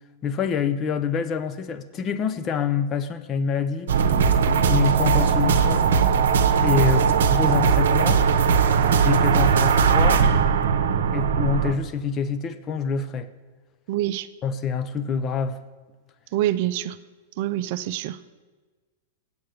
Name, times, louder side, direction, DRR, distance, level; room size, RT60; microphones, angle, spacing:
voice 1, 0.2-3.9 4.5-5.9 6.6-8.2 9.0-10.2 11.1-13.3 14.4-15.6, left 6 dB, 30° left, 11 dB, 0.6 m, -26 dB
sound 1, 3.9-11.7, right 6 dB, 75° right, 0.8 m, -19 dB
voice 2, 13.9-14.3 16.3-17.0 17.4-18.2, right 13 dB, 55° right, 13 dB, 0.4 m, -25 dB
7.8 x 7.5 x 7.0 m, 1.3 s
hypercardioid pair, 115°, 0 cm